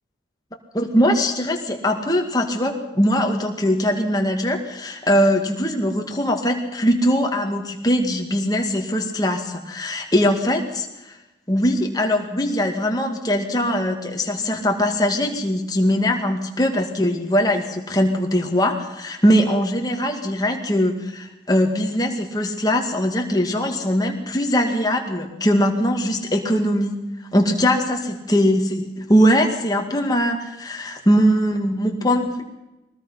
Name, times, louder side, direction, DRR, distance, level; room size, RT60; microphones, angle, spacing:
voice 1, 0.7-11.2 11.5-32.4, equal, 20° left, 3 dB, 2.3 m, -21 dB
22.5 x 19.5 x 5.9 m, 0.99 s
head